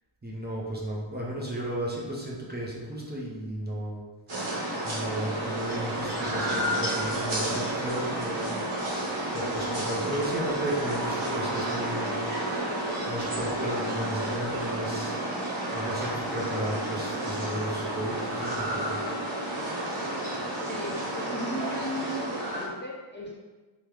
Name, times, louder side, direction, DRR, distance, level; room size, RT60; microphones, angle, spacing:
voice 1, 0.2-4.0 4.5-4.6 4.8-9.0 9.3-12.2 13.1-15.2 15.7-19.0, right 1 dB, 20° right, -4 dB, 0.6 m, -34 dB
sound 1, 4.3-22.7, right 1 dB, 80° right, 1.4 m, -31 dB
voice 2, 20.2-23.4, equal, 25° left, -4 dB, 0.6 m, -37 dB
3.5 x 3.0 x 3.3 m, 1.3 s
wide cardioid pair, 120°, 48 cm